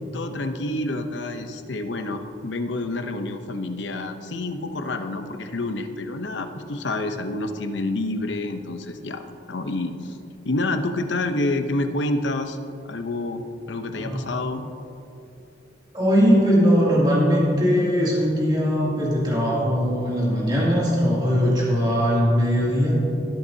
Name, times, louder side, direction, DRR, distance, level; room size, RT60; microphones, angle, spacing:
voice 1, 0.0-9.2 9.5-10.2 10.4-12.6 12.8-13.4 13.7-14.6, left 2 dB, 70° left, 7 dB, 0.7 m, -28 dB
voice 2, 15.9-22.9, equal, 25° right, -6 dB, 2.6 m, -20 dB
18.5 x 8.1 x 2.8 m, 2.8 s
head